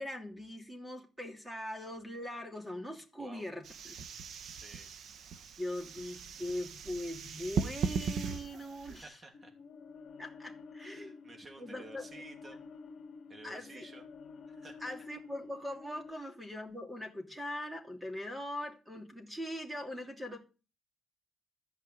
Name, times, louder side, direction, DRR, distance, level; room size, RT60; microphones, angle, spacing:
voice 1, 0.0-3.9 5.6-9.1 10.2-11.1 11.6-12.1 13.4-13.9 14.8-20.4, left 1 dB, 5° right, 3 dB, 2.9 m, -41 dB
sound 1, 3.6-9.0, right 6 dB, 60° right, 1.1 m, -38 dB
voice 2, 4.4-4.9 8.8-9.5 10.8-12.6 13.3-14.0 14.5-14.9 16.1-16.3 20.0-20.1, right 2 dB, 30° right, 4 dB, 2.7 m, -53 dB
sound 2, 9.3-16.1, left 4 dB, 55° left, 2.0 m, -50 dB
14.0 x 5.4 x 9.3 m, 0.34 s
cardioid pair, 130°, 0 cm